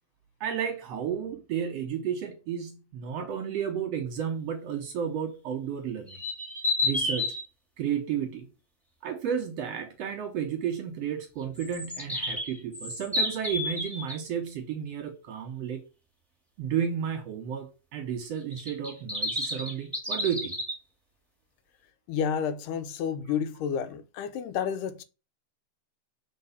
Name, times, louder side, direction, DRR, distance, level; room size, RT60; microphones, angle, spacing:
voice 1, 0.4-6.2 6.8-7.3 7.8-8.5 9.0-15.8 16.6-20.6, right 8 dB, 65° right, 1.8 m, -32 dB
sound 1, 6.1-7.4 11.6-14.2 18.5-20.7, left 2 dB, ahead, 1.2 m, -30 dB
voice 2, 22.1-25.0, left 7 dB, 85° left, 2.2 m, -30 dB
6.0 x 4.2 x 5.7 m
omnidirectional pair, 3.7 m